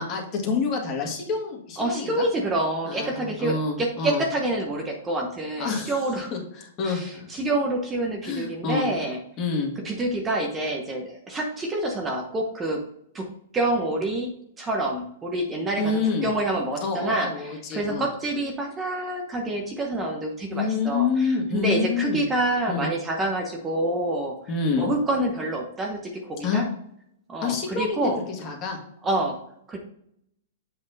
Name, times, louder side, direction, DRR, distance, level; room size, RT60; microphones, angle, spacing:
voice 1, 0.0-2.2 2.9-4.2 5.6-6.0 6.3-7.3 8.2-8.9 9.4-9.7 15.8-16.3 16.8-18.1 20.5-22.3 22.7-22.9 24.5-24.9 26.4-26.6 27.4-28.1 28.4-28.8, left 5 dB, 30° left, 1 dB, 1.8 m, -27 dB
voice 2, 1.8-6.3 6.8-9.2 9.8-12.8 13.1-13.3 13.5-15.9 16.2-24.3 24.8-26.7 27.3-28.2 29.0-29.4 29.7-29.8, right 1 dB, 15° right, 1 dB, 1.0 m, -27 dB
7.5 x 4.4 x 4.0 m, 0.72 s
hypercardioid pair, 145°, 0 cm